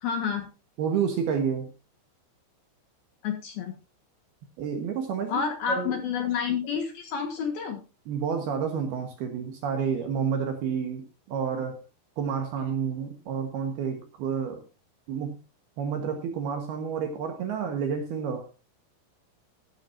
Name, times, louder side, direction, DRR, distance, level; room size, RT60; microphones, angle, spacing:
voice 1, 0.0-0.5 3.2-3.7 5.3-7.8, left 7 dB, 60° left, 5 dB, 2.8 m, -29 dB
voice 2, 0.8-1.7 4.6-5.4 5.7-5.9 8.1-11.8 12.2-14.6 15.1-15.4 15.8-18.5, right 7 dB, 65° right, 5 dB, 2.8 m, -29 dB
14.0 x 12.5 x 2.7 m, 0.29 s
omnidirectional pair, 5.9 m